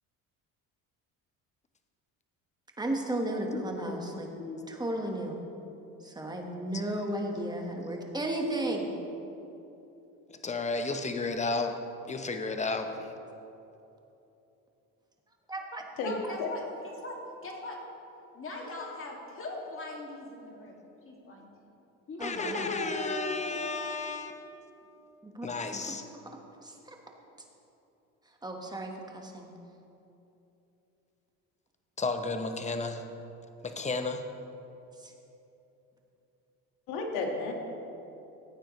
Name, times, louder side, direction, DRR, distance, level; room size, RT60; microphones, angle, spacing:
voice 1, 2.8-4.3 4.7-5.4 6.0-8.9 15.5-15.8 22.2-22.8 25.2-25.9 26.6-27.0 28.4-29.5 35.0-35.1, right 1 dB, 10° right, 1 dB, 1.4 m, -34 dB
voice 2, 3.9-4.6 10.4-11.8 12.1-13.0 22.2-24.5 25.4-26.0 32.0-33.0 33.6-34.2, left 3 dB, 20° left, 7 dB, 0.8 m, -33 dB
voice 3, 16.0-17.2 17.4-17.8 18.3-20.8 21.0-21.5 22.1-23.0, left 2 dB, 35° left, -1 dB, 2.3 m, -41 dB
voice 4, 22.4-23.8 36.9-37.5, left 3 dB, 75° left, 1 dB, 1.8 m, -34 dB
15.0 x 8.9 x 3.2 m, 3.0 s
supercardioid pair, 95°, 36 cm